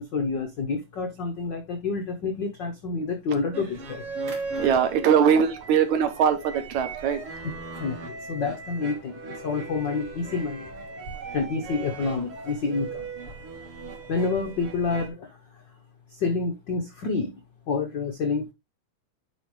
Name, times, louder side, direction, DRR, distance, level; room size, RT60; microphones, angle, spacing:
voice 1, 0.0-4.0 7.8-10.7 11.3-13.1 14.1-15.3 16.1-17.3 17.7-18.5, left 4 dB, 90° left, 0.9 m, -28 dB
sound 1, 3.5-15.1, right 3 dB, 50° right, 2.5 m, -38 dB
voice 2, 4.6-7.2, right 8 dB, 70° right, 2.3 m, -21 dB
10.0 x 4.4 x 3.2 m
omnidirectional pair, 3.6 m